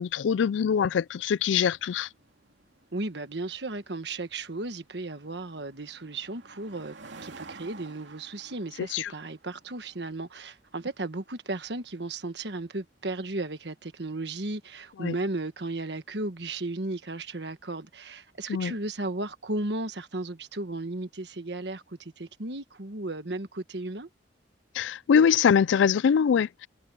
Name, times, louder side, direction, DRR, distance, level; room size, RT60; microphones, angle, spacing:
voice 1, 0.0-2.1 8.9-9.1 15.0-15.1 18.5-18.7 24.8-26.7, left 7 dB, 85° left, 0.3 m, -23 dB
sound 1, 1.5-15.0, right 3 dB, 85° right, 2.7 m, -53 dB
voice 2, 2.9-6.9 7.2-24.1, right 2 dB, 65° right, 1.5 m, -35 dB
head